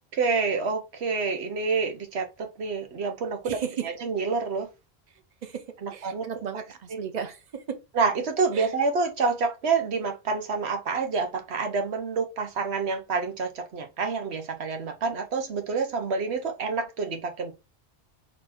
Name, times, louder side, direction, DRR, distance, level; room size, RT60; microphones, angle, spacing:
voice 1, 0.1-3.6 3.8-4.7 5.8-6.3 7.9-17.5, right 4 dB, 90° right, 1.2 m, -28 dB
voice 2, 3.4-3.9 5.4-5.7 5.9-7.8 8.5-8.7, right 8 dB, 45° right, 0.8 m, -34 dB
4.2 x 2.9 x 4.3 m
omnidirectional pair, 1.1 m